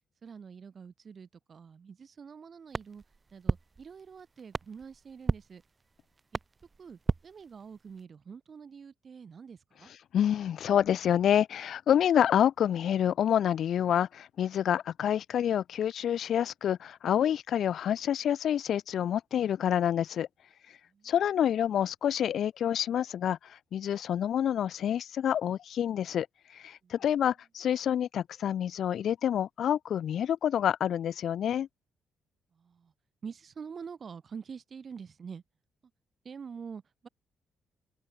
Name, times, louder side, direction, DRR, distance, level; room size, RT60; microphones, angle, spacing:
voice 1, 0.2-3.0 3.3-5.6 6.8-9.9 20.9-21.1 26.8-26.9 32.6-32.9 33.2-35.4 36.2-37.1, right 6 dB, 45° right, 2.3 m, -46 dB
sound 1, 2.7-8.0, right 4 dB, 30° right, 0.8 m, -36 dB
voice 2, 10.1-20.3 21.0-26.3 26.5-31.7, left 9 dB, 65° left, 0.6 m, -28 dB
cardioid pair, 90°, 0 cm